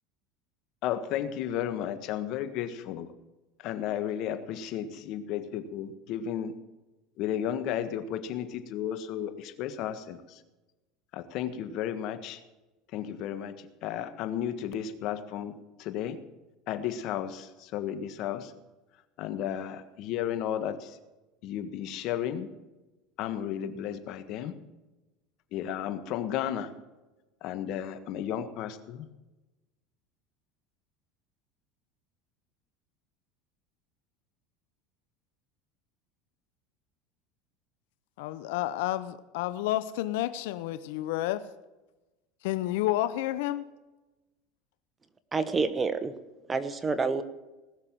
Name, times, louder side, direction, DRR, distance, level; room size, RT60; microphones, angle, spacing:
voice 1, 0.8-3.1 3.6-6.5 7.2-10.4 11.1-12.4 12.9-16.2 16.7-18.5 19.2-21.0 21.4-22.5 23.2-24.5 25.5-26.7 27.4-29.0, left 10 dB, 60° left, 10 dB, 1.5 m, -33 dB
voice 2, 38.2-41.4 42.4-43.6, left 14 dB, 80° left, 14 dB, 0.7 m, -30 dB
voice 3, 45.3-46.1 46.5-47.2, right 4 dB, 20° right, 9 dB, 1.2 m, -28 dB
19.5 x 6.7 x 7.6 m, 1.1 s
supercardioid pair, 110°, 0 cm